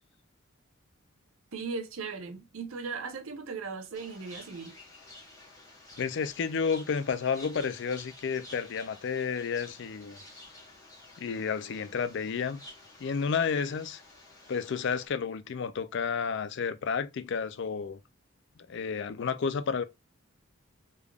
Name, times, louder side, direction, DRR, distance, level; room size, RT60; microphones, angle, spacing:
voice 1, 1.5-4.7, right 4 dB, 75° right, 0.8 m, -38 dB
sound 1, 3.9-15.1, left 1 dB, 15° left, 1.7 m, -51 dB
voice 2, 6.0-10.2 11.2-12.6 13.0-14.0 14.5-18.0 18.7-19.8, left 6 dB, 55° left, 0.4 m, -31 dB
3.5 x 3.4 x 2.3 m
head